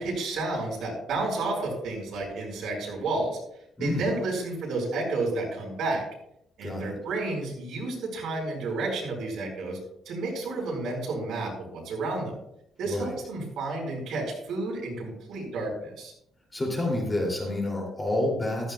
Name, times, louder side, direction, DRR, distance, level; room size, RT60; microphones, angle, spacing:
voice 1, 0.0-3.4 3.8-6.0 6.6-9.8 10.0-12.3 12.8-16.1, right 2 dB, 70° right, -1 dB, 4.7 m, -31 dB
voice 2, 6.6-7.0 12.9-13.0 16.5-18.7, left 1 dB, 15° left, -1 dB, 2.6 m, -28 dB
14.5 x 13.5 x 2.3 m, 0.74 s
cardioid pair, 180°, 0 cm